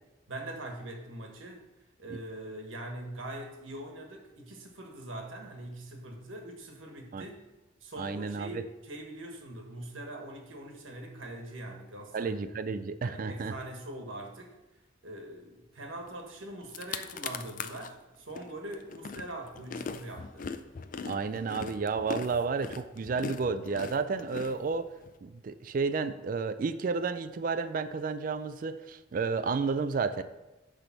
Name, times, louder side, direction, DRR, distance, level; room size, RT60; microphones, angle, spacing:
voice 1, 0.3-1.6 2.0-7.4 7.8-12.4 13.0-14.5 15.0-20.5, right 1 dB, 85° right, 2 dB, 1.4 m, -42 dB
voice 2, 8.0-8.6 12.1-13.5 21.0-24.9 25.2-30.2, right 4 dB, 45° right, 11 dB, 0.3 m, -31 dB
sound 1, 16.3-16.4 16.6-17.9 18.4-25.1, left 5 dB, 45° left, 0.4 m, -40 dB
10.0 x 3.4 x 5.8 m, 1.1 s
head